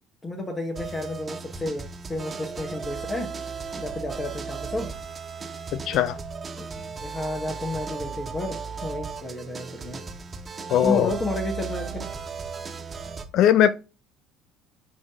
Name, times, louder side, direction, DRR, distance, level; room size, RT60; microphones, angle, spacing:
voice 1, 0.2-3.3 3.7-4.9 6.5-6.7 7.0-10.0 10.8-12.1, left 1 dB, 25° left, 1.6 m, -31 dB
sound 1, 0.7-13.2, right 5 dB, 30° right, 1.5 m, -36 dB
voice 2, 10.7-11.1 13.3-13.8, left 10 dB, 60° left, 0.7 m, -19 dB
9.5 x 4.2 x 3.9 m
hypercardioid pair, 65°, 0 cm